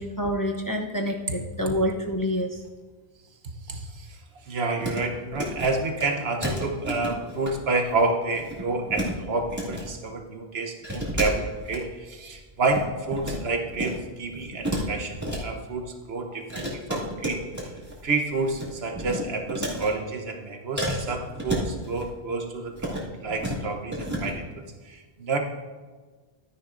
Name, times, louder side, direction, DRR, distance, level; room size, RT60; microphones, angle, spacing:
voice 1, 0.0-2.6, equal, 25° left, 2 dB, 0.5 m, -27 dB
voice 2, 3.6-17.7 18.0-25.4, right 3 dB, 80° right, 4 dB, 1.3 m, -29 dB
sound 1, 4.8-5.0 5.3-5.7 6.0-6.1 6.4-7.5 7.8-8.0 8.3-9.1 9.4-9.8 10.8-11.8 12.3-13.4 13.7-14.0 14.3-15.4 16.5-18.0 18.3-18.7 18.9-19.9 20.8-22.1 22.7-23.0 23.3-23.6 23.9-24.3, equal, 15° right, 2.0 m, -31 dB
13.0 x 9.7 x 2.6 m, 1.4 s
omnidirectional pair, 1.0 m